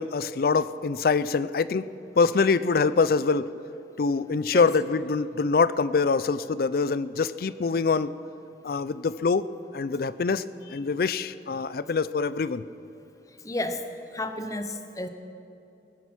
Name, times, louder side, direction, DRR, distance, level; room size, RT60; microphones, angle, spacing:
voice 1, 0.0-1.9 2.2-3.5 4.0-8.1 8.6-9.5 9.7-12.6, left 4 dB, 55° left, 16 dB, 0.4 m, -24 dB
voice 2, 13.4-13.9 14.1-15.1, left 1 dB, 20° left, 8 dB, 0.8 m, -31 dB
19.5 x 10.0 x 6.0 m, 2.7 s
head